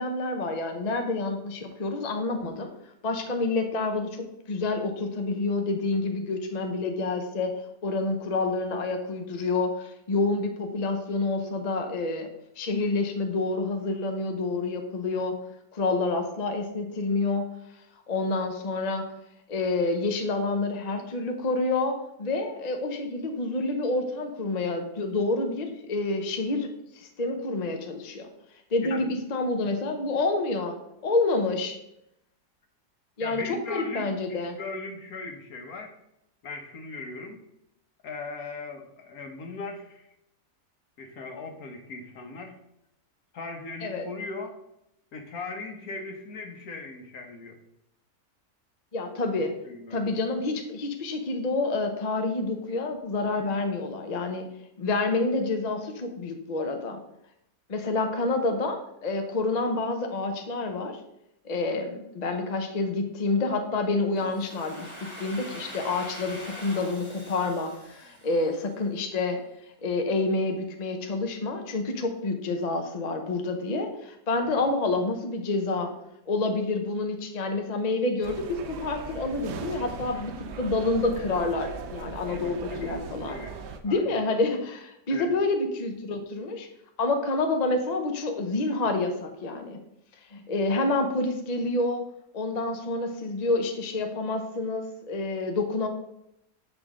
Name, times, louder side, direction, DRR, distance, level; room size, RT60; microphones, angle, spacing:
voice 1, 0.0-2.7 3.0-7.5 7.8-12.3 12.6-15.3 15.7-17.5 18.1-19.0 19.5-26.7 26.9-28.3 28.7-30.8 31.0-31.8 33.2-34.6 43.8-44.1 48.9-49.5 49.9-54.5 54.8-57.0 57.7-61.0 61.4-64.9 65.2-69.4 69.8-75.9 76.3-83.4 83.8-86.7 87.0-89.8 90.3-92.0 92.3-95.9, left 3 dB, 40° left, 4 dB, 0.5 m, -28 dB
voice 2, 33.2-35.9 36.4-37.4 38.0-40.1 41.0-42.6 43.3-44.6 45.1-47.6 49.6-50.0 74.4-74.5 82.3-83.6 83.9-84.1 85.1-85.3, left 3 dB, 65° left, 4 dB, 1.4 m, -39 dB
Domestic sounds home sounds, 64.2-68.9, equal, 15° left, 1.8 m, -43 dB
sound 1, 78.2-83.8, right 6 dB, 80° right, 1.3 m, -39 dB
8.0 x 5.1 x 3.7 m, 0.81 s
omnidirectional pair, 1.8 m